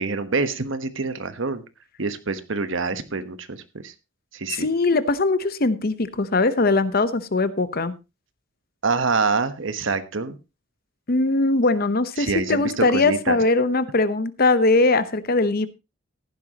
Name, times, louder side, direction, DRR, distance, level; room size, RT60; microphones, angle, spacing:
voice 1, 0.0-1.6 2.0-3.9 4.3-4.7 8.8-10.4 12.2-13.4, right 4 dB, 70° right, 11 dB, 1.2 m, -26 dB
voice 2, 4.5-7.9 11.1-15.7, left 3 dB, 50° left, 14 dB, 0.9 m, -21 dB
15.0 x 11.5 x 2.9 m, 0.26 s
head